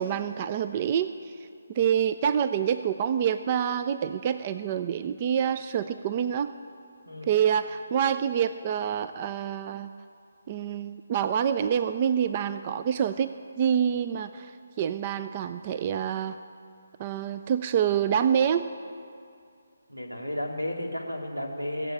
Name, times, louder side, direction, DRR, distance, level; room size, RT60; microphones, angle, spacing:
voice 1, 0.0-1.5 1.7-6.5 7.2-9.9 10.5-14.5 14.8-16.4 17.0-18.7, right 8 dB, 30° right, 11 dB, 0.4 m, -27 dB
voice 2, 19.9-21.9, left 1 dB, 90° right, 1 dB, 2.4 m, -33 dB
18.5 x 8.0 x 8.5 m, 2.3 s
figure-of-eight pair, 145°, 0 cm